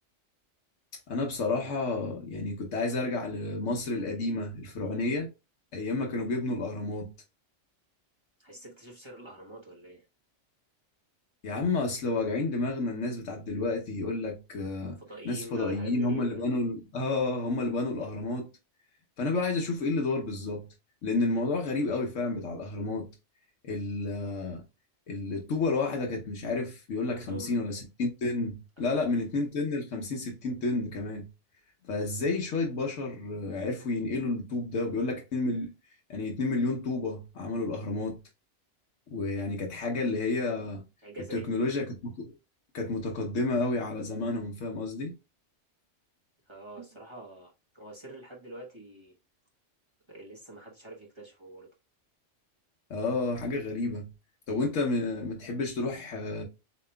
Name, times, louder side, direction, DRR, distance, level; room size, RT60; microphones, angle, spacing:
voice 1, 1.1-5.3 5.7-7.1 11.4-15.0 15.2-18.5 19.2-20.7 21.0-23.1 23.6-24.6 25.1-31.3 31.9-35.7 36.1-38.2 39.1-40.8 41.3-42.3 42.7-45.1 52.9-54.1 54.5-56.4, left 3 dB, 90° left, 1.3 m, -30 dB
voice 2, 8.4-10.0 15.0-16.4 27.0-27.6 28.8-29.1 41.0-41.7 46.5-49.2 50.1-51.7, right 2 dB, 25° right, 1.1 m, -45 dB
7.0 x 2.9 x 2.2 m
omnidirectional pair, 1.2 m